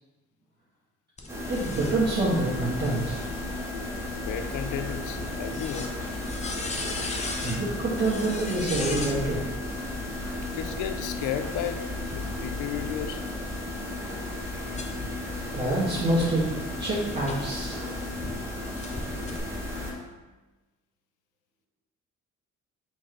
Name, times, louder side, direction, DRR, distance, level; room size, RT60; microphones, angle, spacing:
sound 1, 1.2-9.2 10.3-12.7 13.3-18.3 18.8-19.4, left 2 dB, 25° left, 0.6 m, -40 dB
sound 2, 1.3-19.9, left 2 dB, 10° right, 1.0 m, -34 dB
voice 1, 1.5-3.2 7.4-9.4 15.5-16.5 16.8-17.8, right 2 dB, 35° right, -10 dB, 1.3 m, -26 dB
voice 2, 4.1-6.0 10.5-13.2, left 9 dB, 80° left, 8 dB, 0.5 m, -34 dB
4.2 x 3.3 x 3.7 m, 1.2 s
cardioid pair, 90°, 30 cm